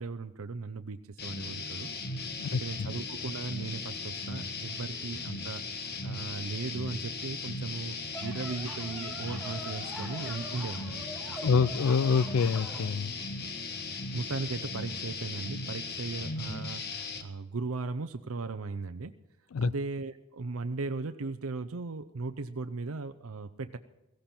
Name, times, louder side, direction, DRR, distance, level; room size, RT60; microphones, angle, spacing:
voice 1, 0.0-1.9 2.5-11.7 14.1-19.1 19.6-23.8, right 3 dB, 80° right, 9 dB, 0.7 m, -37 dB
sound 1, 1.2-17.2, left 3 dB, 50° left, 1.4 m, -38 dB
voice 2, 2.4-2.9 11.4-13.1 19.5-19.7, left 5 dB, 75° left, 21 dB, 0.4 m, -26 dB
sound 2, 8.1-12.9, right 1 dB, 5° left, 3.5 m, -44 dB
17.0 x 15.5 x 4.4 m, 0.96 s
head